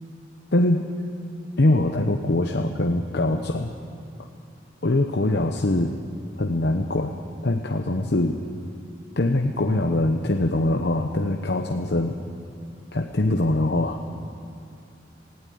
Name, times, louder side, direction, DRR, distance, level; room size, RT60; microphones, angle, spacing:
voice 1, 0.5-0.9 1.6-3.7 4.8-6.0 6.4-7.2 7.4-8.4 9.2-12.2 12.9-14.0, left 2 dB, 65° left, 4 dB, 0.9 m, -23 dB
18.0 x 16.0 x 9.4 m, 2.6 s
head